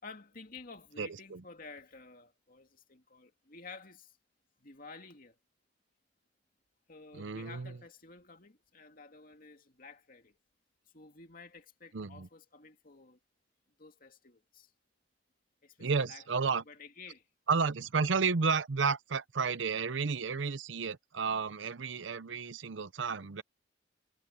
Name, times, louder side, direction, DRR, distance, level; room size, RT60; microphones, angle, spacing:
voice 1, 0.0-4.2 4.6-5.4 6.9-10.4 10.9-13.2 13.8-14.7 15.6-16.3 16.7-17.3 18.0-18.1, left 4 dB, 50° left, 2.5 m, -52 dB
voice 2, 1.0-1.4 7.1-7.8 11.9-12.3 15.8-16.6 17.5-23.4, right 5 dB, 85° right, 0.7 m, -32 dB
head